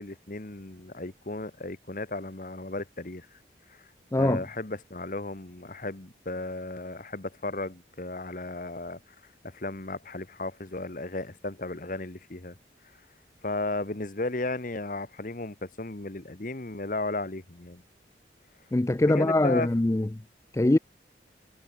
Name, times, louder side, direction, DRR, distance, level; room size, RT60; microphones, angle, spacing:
voice 1, 0.0-3.3 3.7-3.8 4.2-9.0 9.4-12.6 13.4-17.8 19.0-19.7, left 2 dB, 45° left, 1.3 m, -35 dB
voice 2, 18.7-20.1 20.5-20.8, left 1 dB, 15° left, 0.4 m, -22 dB
head